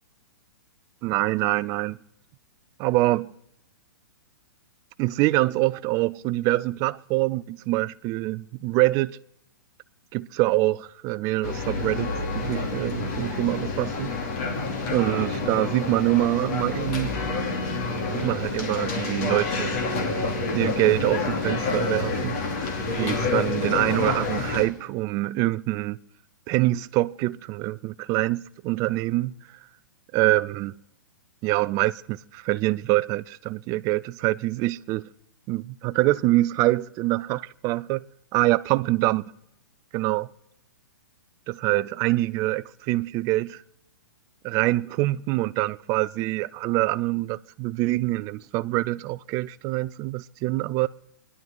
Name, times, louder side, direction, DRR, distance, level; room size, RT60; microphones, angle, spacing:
voice 1, 1.0-2.0 2.8-3.3 5.0-9.2 10.1-14.1 14.9-17.1 18.1-19.9 20.5-22.4 23.0-26.0 26.5-29.3 30.1-30.8 31.4-35.1 35.5-38.0 38.3-39.2 39.9-40.3 41.5-43.6 44.4-50.9, right 18 dB, 30° right, 0.5 m, -25 dB
sound 1, 11.4-24.7, left 3 dB, 50° left, 2.9 m, -28 dB
26.5 x 11.0 x 3.9 m
hypercardioid pair, 125°, 10 cm